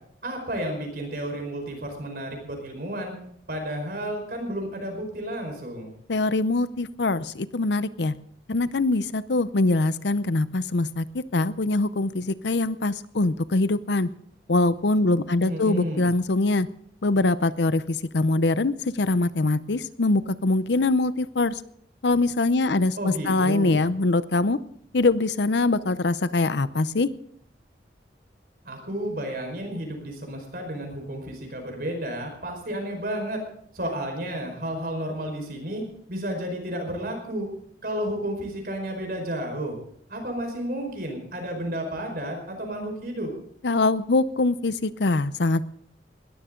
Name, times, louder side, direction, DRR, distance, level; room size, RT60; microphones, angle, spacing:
voice 1, 0.2-3.1 3.5-5.9 15.4-16.1 23.0-23.8 28.6-33.4 33.7-35.8 36.1-37.5 37.8-39.8 40.1-43.3, right 1 dB, 55° right, 3 dB, 5.0 m, -32 dB
voice 2, 6.1-8.1 8.5-14.1 14.5-16.7 17.0-21.5 22.0-24.6 24.9-27.1 43.6-45.7, left 2 dB, 75° left, 15 dB, 0.7 m, -23 dB
20.5 x 14.0 x 3.8 m, 0.66 s
head